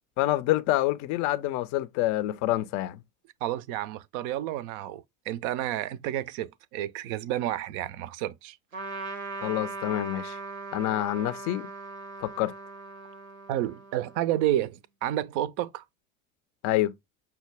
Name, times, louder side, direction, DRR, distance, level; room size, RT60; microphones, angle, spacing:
voice 1, 0.2-3.0 9.4-10.4 10.7-11.7 12.2-12.5 16.6-16.9, left 15 dB, 45° left, 0.5 m, -27 dB
voice 2, 3.4-8.6 13.5-15.8, right 13 dB, 50° right, 0.5 m, -30 dB
Trumpet, 8.7-14.6, right 3 dB, 90° right, 0.7 m, -39 dB
5.7 x 2.2 x 3.3 m
figure-of-eight pair, 60°, 41 cm